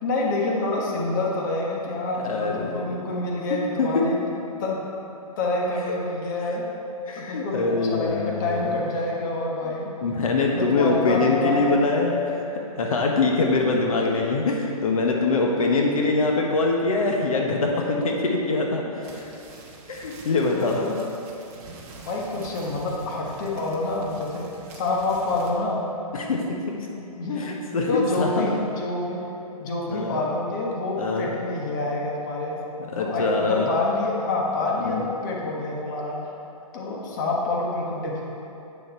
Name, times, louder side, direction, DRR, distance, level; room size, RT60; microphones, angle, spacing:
voice 1, 0.0-4.2 4.6-4.8 5.4-6.7 7.2-9.9 10.5-11.8 13.1-13.3 20.4-21.1 22.0-24.5 24.7-25.8 27.0-27.5 27.9-29.2 29.6-32.6 33.0-36.2 36.7-38.2, left 2 dB, 30° left, -3 dB, 1.2 m, -27 dB
voice 2, 2.2-3.0 3.5-4.0 7.1-8.8 10.0-19.3 19.9-20.9 26.1-26.8 27.4-28.3 29.9-30.2 31.0-31.3 32.9-33.7 34.8-35.0, left 3 dB, 65° left, 0 dB, 1.2 m, -24 dB
sound 1, 19.0-25.5, right 3 dB, 25° right, 1.1 m, -45 dB
9.0 x 6.7 x 4.5 m, 2.9 s
hypercardioid pair, 165°, 19 cm